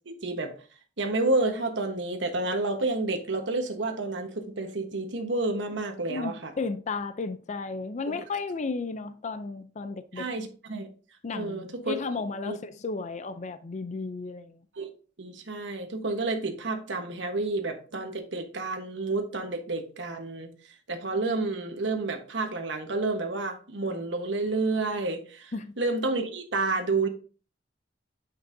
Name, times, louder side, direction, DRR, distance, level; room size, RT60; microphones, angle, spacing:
voice 1, 0.0-0.5 1.0-6.5 8.1-8.2 10.1-10.9 11.3-12.0 12.4-12.6 14.8-14.9 15.2-20.5 20.9-27.1, right 3 dB, 80° right, 1.2 m, -30 dB
voice 2, 6.1-10.3 11.2-14.6 25.5-25.7, left 4 dB, 40° left, 0.5 m, -34 dB
8.9 x 5.4 x 2.6 m
head